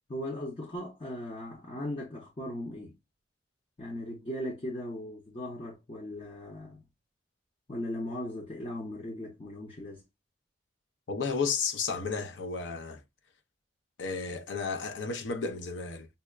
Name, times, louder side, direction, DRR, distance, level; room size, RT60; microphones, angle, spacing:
voice 1, 0.1-2.9 3.8-6.8 7.7-10.0, left 1 dB, 30° left, 0.6 m, -38 dB
voice 2, 11.1-13.0 14.0-16.1, left 5 dB, 80° left, 0.6 m, -33 dB
5.4 x 2.1 x 2.3 m
head